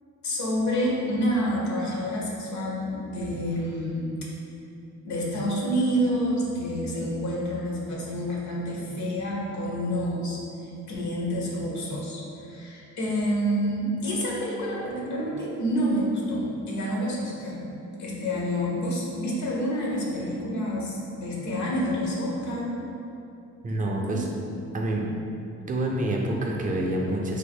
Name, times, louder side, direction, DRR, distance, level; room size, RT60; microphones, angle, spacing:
voice 1, 0.2-4.1 5.0-17.7 18.0-22.8 24.0-24.2, equal, 65° left, -3 dB, 0.8 m, -28 dB
voice 2, 23.6-24.3 24.7-25.0 25.7-27.4, right 1 dB, 25° right, -1 dB, 0.5 m, -27 dB
3.5 x 2.0 x 3.4 m, 2.8 s
cardioid pair, 90°, 30 cm